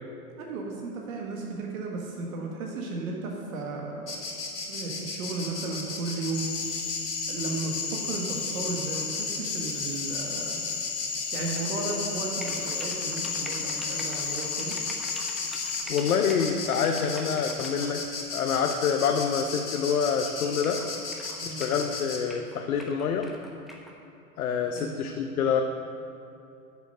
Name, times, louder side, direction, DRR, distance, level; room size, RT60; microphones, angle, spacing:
voice 1, 0.4-4.2 4.7-6.5 7.3-10.6 11.3-14.7 21.4-21.6 24.8-24.9, right 3 dB, 60° right, -1 dB, 1.6 m, -34 dB
Insect, 4.1-22.2, left 4 dB, 80° left, 2.3 m, -35 dB
Cricket / Frog, 6.3-15.8, left 6 dB, 40° left, 1.8 m, -34 dB
sound 1, 11.4-11.7 12.4-17.9 18.7-18.8 19.8-19.9 20.1-20.2 20.6-21.9 22.3-23.9, equal, ahead, 1.0 m, -44 dB
voice 2, 15.9-18.0 18.3-20.8 21.5-23.3 24.4-25.6, left 7 dB, 65° left, 4 dB, 0.8 m, -26 dB
9.3 x 7.0 x 6.5 m, 2.7 s
figure-of-eight pair, 105°, 46 cm